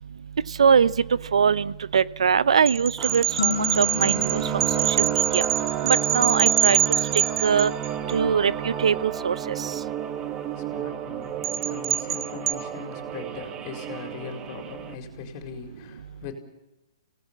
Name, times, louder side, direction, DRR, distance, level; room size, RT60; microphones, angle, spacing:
voice 1, 0.6-0.9 1.3-5.4 5.8-6.8 7.4-7.7 8.1-9.7, right 6 dB, 80° right, 19 dB, 0.8 m, -22 dB
sound 1, 2.7-8.1 11.4-12.5, right 10 dB, 50° right, 1.0 m, -24 dB
sound 2, 3.0-15.0, right 10 dB, 20° right, 1.2 m, -31 dB
sound 3, 3.4-6.0, left 8 dB, 65° left, 1.8 m, -33 dB
voice 2, 10.3-16.3, left 6 dB, 30° left, 6 dB, 4.6 m, -40 dB
28.5 x 18.0 x 7.4 m, 1.0 s
hypercardioid pair, 155°, 3 cm